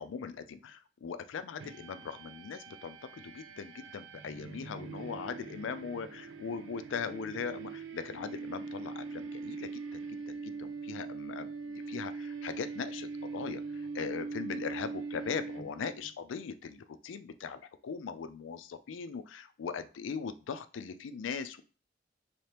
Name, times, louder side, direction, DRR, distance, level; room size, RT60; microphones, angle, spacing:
voice 1, 0.0-21.6, left 6 dB, 85° left, 11 dB, 0.4 m, -40 dB
sound 1, 1.6-16.1, right 4 dB, 85° right, 0.5 m, -42 dB
3.3 x 2.9 x 3.3 m, 0.37 s
head